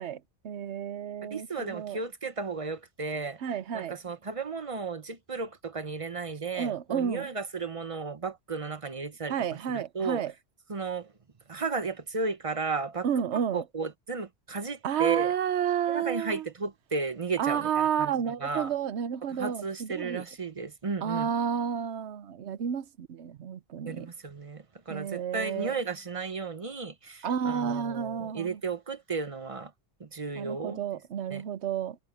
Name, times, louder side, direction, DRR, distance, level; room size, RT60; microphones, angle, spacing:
voice 1, 0.0-2.0 3.4-4.0 6.5-7.3 9.3-10.3 13.0-13.6 14.8-16.5 17.4-20.2 21.0-24.1 24.9-25.7 27.2-28.6 30.4-32.0, right 8 dB, 80° right, 1.1 m, -31 dB
voice 2, 1.2-3.4 3.7-9.4 9.7-10.2 10.7-11.1 11.5-13.1 13.3-15.3 15.9-18.7 19.3-21.3 23.9-29.7 30.0-30.8 31.3-31.4, right 4 dB, 35° right, 0.9 m, -34 dB
omnidirectional pair, 1.1 m